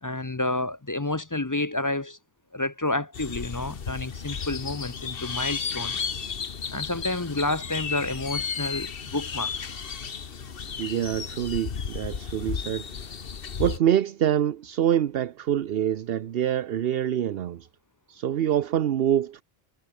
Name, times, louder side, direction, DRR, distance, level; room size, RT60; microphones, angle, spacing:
voice 1, 0.0-2.2 2.5-6.0 6.7-9.7, left 2 dB, 20° left, 0.7 m, -30 dB
sound 1, 3.1-13.8, left 6 dB, 65° left, 1.4 m, -33 dB
voice 2, 10.8-13.2 13.6-17.7 18.1-19.4, right 10 dB, 70° right, 0.9 m, -26 dB
omnidirectional pair, 1.0 m